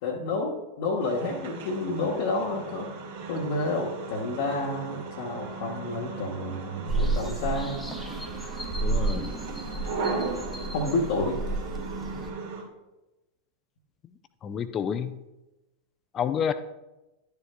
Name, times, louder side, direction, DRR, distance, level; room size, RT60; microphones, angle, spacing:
voice 1, 0.0-2.9 3.3-7.8 10.7-11.4, left 2 dB, 50° left, -4 dB, 1.1 m, -29 dB
sound 1, 1.0-12.6, right 4 dB, 55° right, 1.7 m, -37 dB
sound 2, 6.9-12.3, right 3 dB, 5° left, 1.0 m, -31 dB
voice 2, 8.8-9.4 14.4-15.2 16.1-16.5, left 8 dB, 25° left, 12 dB, 0.5 m, -29 dB
12.0 x 6.8 x 2.2 m, 1.0 s
figure-of-eight pair, 90°, 0 cm